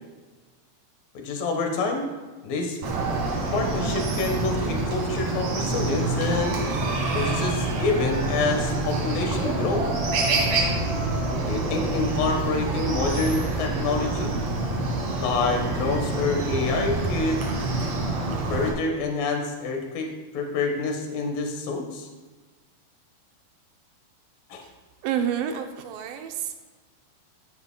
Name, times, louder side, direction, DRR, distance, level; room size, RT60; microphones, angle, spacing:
voice 1, 1.1-2.1 2.4-2.8 3.5-6.5 7.1-9.9 11.5-14.3 15.2-17.4 18.5-22.1 24.5-24.6, left 3 dB, 65° left, 3 dB, 2.8 m, -27 dB
Chicken rooster, 2.8-18.7, right 2 dB, 55° right, 2.3 m, -26 dB
voice 2, 25.0-26.6, right 9 dB, 75° right, 6 dB, 2.2 m, -29 dB
14.5 x 9.6 x 2.2 m, 1.3 s
omnidirectional pair, 4.5 m